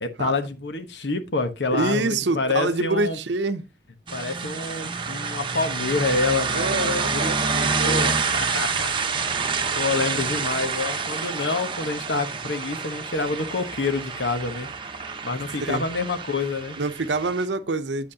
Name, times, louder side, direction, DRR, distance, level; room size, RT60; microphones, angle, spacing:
voice 1, 0.0-3.2 4.1-9.5 9.8-14.7 15.2-16.8, left 3 dB, 75° left, 1.1 m, -27 dB
voice 2, 1.7-3.6 6.5-8.1 15.6-15.9 16.8-18.1, right 3 dB, 80° right, 0.7 m, -26 dB
sound 1, 4.1-17.5, right 5 dB, 30° right, 1.0 m, -28 dB
8.3 x 7.7 x 2.8 m
head